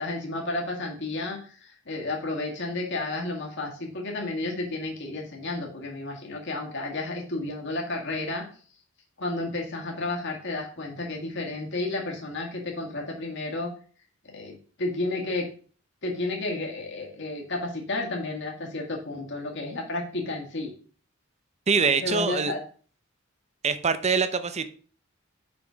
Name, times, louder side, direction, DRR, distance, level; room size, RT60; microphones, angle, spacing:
voice 1, 0.0-8.4 9.2-13.7 14.2-15.5 16.0-20.7 21.8-22.6, left 2 dB, 60° left, 1.9 m, -32 dB
voice 2, 21.7-22.5 23.6-24.7, right 5 dB, 30° right, 0.6 m, -24 dB
6.1 x 5.8 x 5.1 m
head